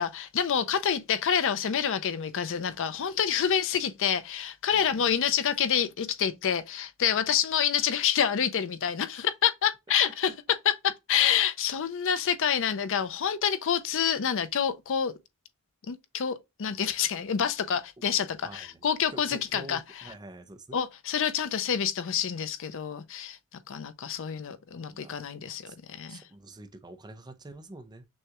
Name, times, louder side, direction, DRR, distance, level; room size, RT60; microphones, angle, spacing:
voice 1, 0.0-10.3 10.6-15.1 15.9-19.8 20.7-23.4 23.7-26.2, left 8 dB, 60° left, 0.5 m, -27 dB
voice 2, 4.7-5.2 9.1-9.2 18.4-18.9 19.1-20.8 24.9-25.8 26.1-28.1, right 2 dB, 20° right, 0.5 m, -47 dB
6.2 x 2.3 x 2.9 m
head